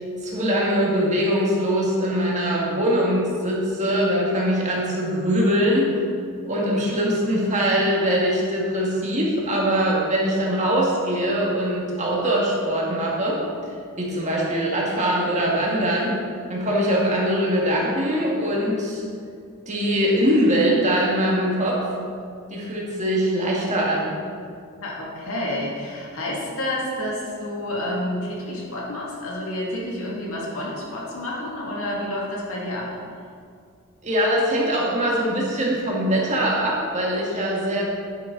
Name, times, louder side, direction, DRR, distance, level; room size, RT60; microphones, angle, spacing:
voice 1, 0.2-5.9 6.4-13.4 14.0-16.1 16.5-19.0 19.7-21.8 22.5-24.2 34.0-37.8, equal, 35° right, -3 dB, 2.1 m, -22 dB
voice 2, 24.8-33.0, left 1 dB, 70° left, -4 dB, 2.5 m, -29 dB
10.0 x 9.8 x 4.1 m, 2.3 s
head